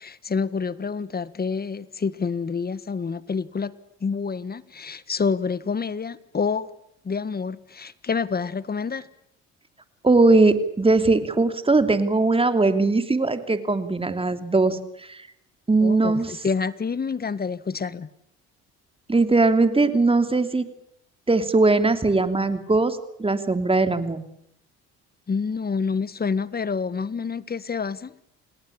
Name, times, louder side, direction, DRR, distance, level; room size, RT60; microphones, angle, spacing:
voice 1, 0.0-3.7 4.0-6.7 7.0-9.1 15.8-18.1 25.3-28.1, left 5 dB, 30° left, 1.6 m, -28 dB
voice 2, 10.0-14.8 15.1-15.2 15.7-16.3 19.1-20.7 21.3-24.2, right 3 dB, 15° right, 3.0 m, -20 dB
29.0 x 18.5 x 8.7 m
supercardioid pair, 80°, 32 cm